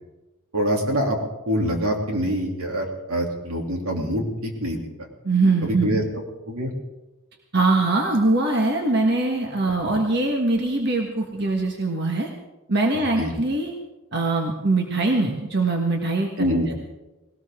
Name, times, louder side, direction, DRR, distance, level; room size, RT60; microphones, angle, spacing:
voice 1, 0.5-1.2 1.5-4.8 5.6-6.7 12.9-13.3 16.4-16.7, equal, 80° right, 1 dB, 2.9 m, -25 dB
voice 2, 5.2-6.0 7.5-12.3 12.7-13.7 14.1-16.5, right 2 dB, 50° right, 2 dB, 1.5 m, -22 dB
19.5 x 18.0 x 3.7 m, 1.1 s
head